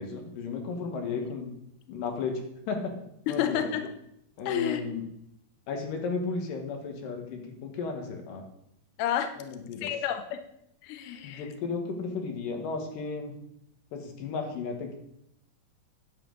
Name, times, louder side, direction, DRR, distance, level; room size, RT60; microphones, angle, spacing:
voice 1, 0.0-1.5 1.9-2.9 3.3-3.8 4.4-5.0 5.7-8.4 9.4-9.9 11.2-13.4 13.9-14.9, left 4 dB, 65° left, 3 dB, 2.7 m, -34 dB
voice 2, 3.3-3.9 4.5-4.8 9.0-9.3 9.8-10.4 10.8-11.5, left 10 dB, 85° left, 8 dB, 1.8 m, -30 dB
9.9 x 7.6 x 3.9 m, 0.76 s
omnidirectional pair, 4.5 m